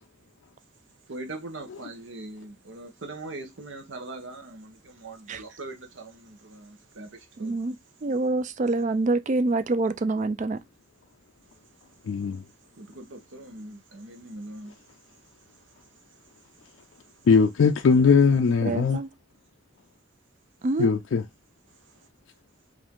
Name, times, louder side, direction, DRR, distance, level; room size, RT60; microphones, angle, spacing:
voice 1, 1.1-7.6 12.8-14.8, right 2 dB, 70° right, 0.9 m, -41 dB
voice 2, 7.4-7.8 8.0-10.6 18.6-19.1 20.6-20.9, right 2 dB, 40° right, 0.4 m, -26 dB
voice 3, 12.1-12.4 17.3-19.0 20.8-21.2, left 5 dB, 75° left, 0.4 m, -20 dB
5.0 x 2.6 x 3.6 m
head